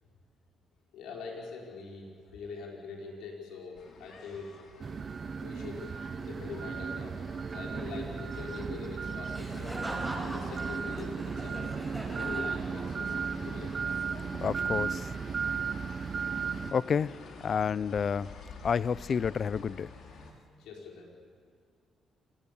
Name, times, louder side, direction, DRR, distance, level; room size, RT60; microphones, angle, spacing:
voice 1, 0.9-4.6 5.4-5.9 6.2-7.2 7.5-9.8 10.2-11.8 12.1-13.7 20.6-21.1, left 4 dB, 90° left, -1 dB, 5.2 m, -43 dB
sound 1, 3.7-20.3, left 4 dB, 70° left, 3.4 m, -50 dB
sound 2, 4.8-16.7, right 6 dB, 40° right, 0.7 m, -35 dB
Laughter, 9.3-13.2, equal, ahead, 6.1 m, -41 dB
voice 2, 14.4-15.1 16.7-18.3 18.6-19.9, left 6 dB, 50° left, 20 dB, 0.5 m, -30 dB
27.5 x 20.5 x 7.1 m, 2.1 s
cardioid pair, 90°, 0 cm